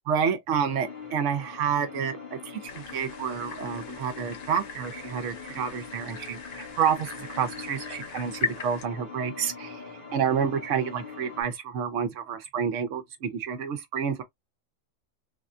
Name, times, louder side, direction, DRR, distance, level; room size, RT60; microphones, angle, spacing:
voice 1, 0.1-9.8 10.1-14.2, right 7 dB, 70° right, 1.1 m, -29 dB
sound 1, 0.7-11.4, left 5 dB, 45° left, 1.1 m, -43 dB
sound 2, 2.7-8.9, left 5 dB, 65° left, 0.4 m, -39 dB
3.5 x 2.2 x 2.5 m
omnidirectional pair, 1.4 m